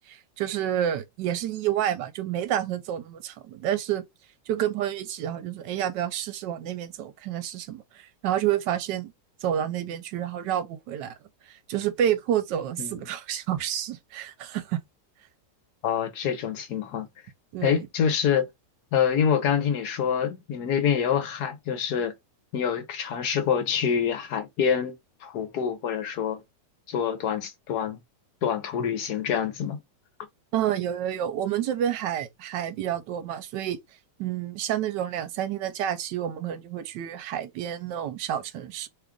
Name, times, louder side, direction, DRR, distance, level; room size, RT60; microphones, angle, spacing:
voice 1, 0.1-4.0 4.5-9.1 9.4-11.1 11.5-14.8 17.5-17.8 30.5-33.8 34.2-38.9, right 10 dB, 80° right, 1.2 m, -29 dB
voice 2, 15.8-17.1 17.6-18.5 18.9-22.1 22.5-26.4 26.9-28.0 28.4-29.8, left 8 dB, 65° left, 1.2 m, -26 dB
3.1 x 2.4 x 3.6 m
omnidirectional pair, 1.9 m